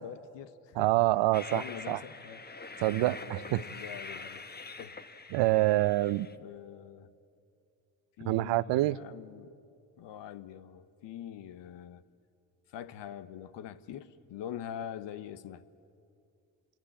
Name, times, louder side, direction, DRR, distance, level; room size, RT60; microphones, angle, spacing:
voice 1, 0.0-0.9 1.5-2.5 3.2-4.4 4.8-5.0 6.0-7.1 8.2-9.5 10.0-12.0 12.7-15.6, left 10 dB, 70° left, 14 dB, 1.1 m, -44 dB
voice 2, 0.8-2.0 2.8-3.6 5.3-6.3 8.2-9.0, right 17 dB, 70° right, 18 dB, 0.7 m, -26 dB
Train, 1.3-6.3, left 3 dB, 20° left, 1.2 m, -45 dB
27.0 x 21.5 x 8.8 m, 2.4 s
supercardioid pair, 60°, 45 cm